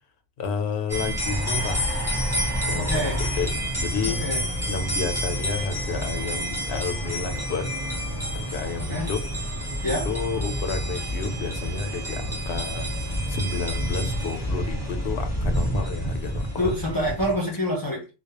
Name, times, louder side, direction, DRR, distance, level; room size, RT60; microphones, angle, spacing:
voice 1, 0.4-1.9 2.7-3.5 3.8-4.2 4.7-7.7 8.3-9.2 10.1-16.8, left 4 dB, 90° left, 0.9 m, -31 dB
sound 1, 0.9-17.4, equal, 5° right, 0.8 m, -28 dB
sound 2, 1.2-3.5, right 3 dB, 55° right, 0.5 m, -37 dB
voice 2, 2.7-3.2 4.1-4.4 8.8-9.1 9.8-10.1 16.6-18.1, equal, 35° left, 0.4 m, -27 dB
2.3 x 2.1 x 2.8 m
omnidirectional pair, 1.0 m